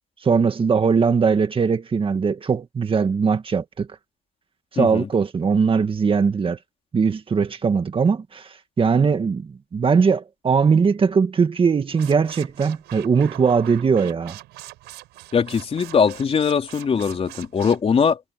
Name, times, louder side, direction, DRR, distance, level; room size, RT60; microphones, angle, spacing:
voice 1, 0.2-3.9 4.7-6.6 6.9-14.4, right 5 dB, 30° right, 2.0 m, -20 dB
voice 2, 4.8-5.1 15.3-18.2, left 6 dB, 35° left, 3.6 m, -21 dB
sound 1, 11.9-17.8, right 18 dB, 90° right, 7.1 m, -42 dB
cardioid pair, 110°, 17 cm